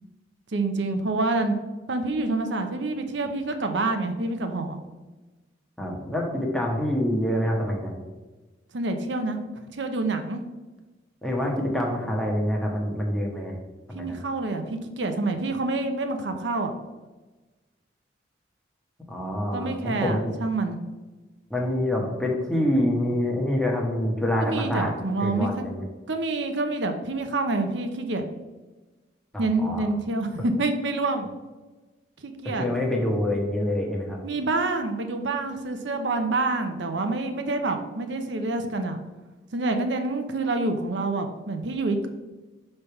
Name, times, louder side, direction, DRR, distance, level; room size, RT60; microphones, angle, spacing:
voice 1, 0.5-1.5 1.9-4.8 8.7-9.4 9.7-10.4 13.9-16.7 19.5-20.8 24.4-25.6 26.1-28.3 29.4-31.3 32.2-32.7 34.2-39.0 39.5-42.1, right 2 dB, 75° right, 6 dB, 0.7 m, -27 dB
voice 2, 5.8-8.0 11.2-13.5 13.9-14.2 19.1-20.3 21.5-24.9 25.2-25.8 29.3-29.9 32.6-34.2, left 1 dB, 5° left, -1 dB, 1.1 m, -26 dB
5.6 x 3.3 x 5.7 m, 1.2 s
head